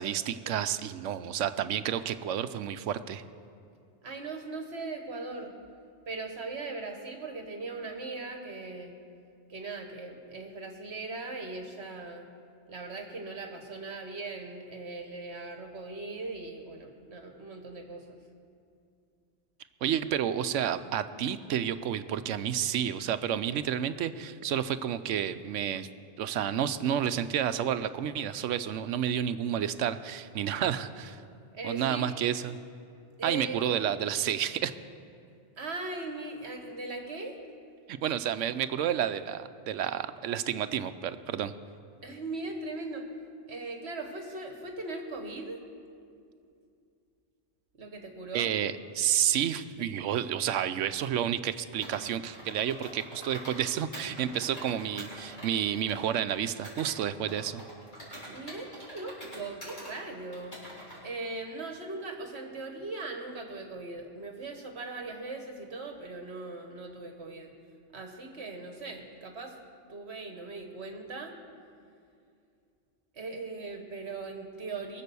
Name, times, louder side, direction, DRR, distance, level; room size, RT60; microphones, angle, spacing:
voice 1, 0.0-3.2 19.8-25.9 26.2-31.2 31.6-32.6 33.2-34.7 37.9-41.5 48.3-57.6, right 9 dB, 85° right, 11 dB, 1.0 m, -30 dB
voice 2, 4.0-5.5 6.1-9.0 9.5-12.3 12.7-18.2 31.5-32.1 33.2-33.8 35.6-37.4 42.0-43.1 43.5-45.6 47.7-48.5 58.3-60.6 61.0-67.5 67.9-69.6 69.9-71.3 73.1-75.0, right 3 dB, 60° right, 4 dB, 1.4 m, -39 dB
Computer keyboard, 51.8-53.6 53.9-56.9 57.3-59.9 60.3-61.0, right 1 dB, 40° left, 4.7 m, -45 dB
22.5 x 7.5 x 6.9 m, 2.4 s
omnidirectional pair, 1.3 m